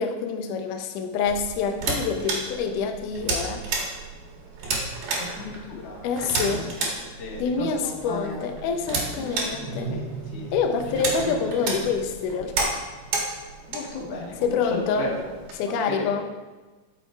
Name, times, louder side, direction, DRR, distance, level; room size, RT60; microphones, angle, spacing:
voice 1, 0.0-3.7 6.0-6.6 7.4-9.9 10.5-12.8 14.4-15.1 15.6-16.2, left 5 dB, 80° left, 5 dB, 1.8 m, -26 dB
sound 1, 1.3-15.5, right 3 dB, 55° right, 2.6 m, -32 dB
voice 2, 5.2-8.4 9.2-10.6 10.9-11.5 13.7-14.6 14.9-15.3 15.6-16.2, left 3 dB, 45° left, -3 dB, 2.3 m, -36 dB
sound 2, 8.6-14.0, right 3 dB, 75° right, 1.6 m, -39 dB
11.0 x 6.8 x 4.6 m, 1.2 s
omnidirectional pair, 4.9 m